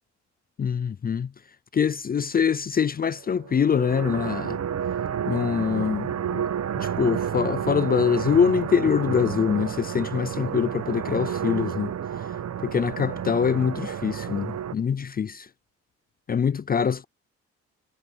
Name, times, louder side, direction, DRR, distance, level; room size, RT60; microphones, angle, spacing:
voice 1, 0.6-1.3 1.7-4.6 5.3-6.4 6.7-11.9 12.6-15.5 16.3-17.1, left 7 dB, 30° left, 0.5 m, -24 dB
sound 1, 3.4-14.7, right 9 dB, 60° right, 1.4 m, -30 dB
cardioid pair, 90°, 30 cm